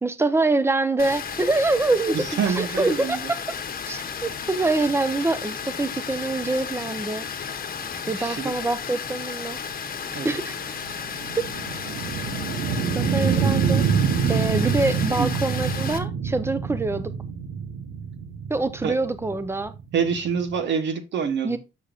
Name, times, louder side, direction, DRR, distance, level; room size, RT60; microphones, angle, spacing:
voice 1, 0.0-3.2 3.9-7.3 8.1-9.6 10.2-10.6 11.4-11.5 12.9-13.9 14.3-17.1 18.5-19.7 21.4-21.6, right 2 dB, 10° right, 0.8 m, -25 dB
Water, 1.0-16.0, left 7 dB, 45° left, 1.1 m, -33 dB
voice 2, 2.1-3.3 8.0-8.5 10.1-10.3 14.5-14.8 15.2-15.3 18.8-19.0 19.9-21.6, right 6 dB, 65° right, 1.1 m, -27 dB
sound 1, 9.9-20.6, right 6 dB, 90° right, 1.1 m, -26 dB
7.4 x 6.4 x 2.5 m
cardioid pair, 90°, 20 cm